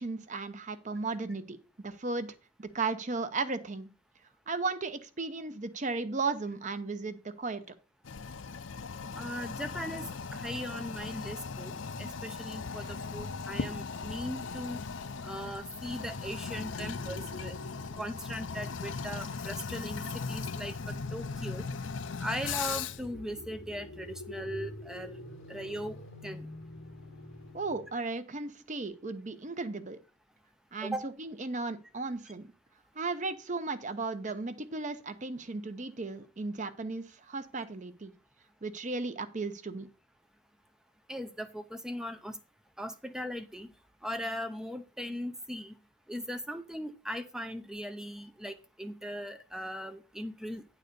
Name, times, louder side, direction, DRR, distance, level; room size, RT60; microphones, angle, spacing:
voice 1, 0.0-1.6 1.8-3.9 4.5-7.8 27.5-30.0 30.7-32.5 32.9-38.1 38.6-39.9, right 3 dB, 40° right, 11 dB, 0.7 m, -35 dB
Toilet flush, 8.0-23.1, left 5 dB, 70° left, 0.6 m, -38 dB
voice 2, 9.2-10.0 10.3-14.8 15.2-17.6 18.0-21.6 22.2-25.2 25.5-26.0 26.2-26.5 30.8-31.1 41.1-42.4 42.8-43.7 44.0-45.7 46.1-50.7, equal, 5° right, 8 dB, 0.5 m, -39 dB
sound 1, 15.8-27.9, left 1 dB, 85° left, 1.3 m, -48 dB
9.6 x 4.1 x 6.7 m, 0.35 s
head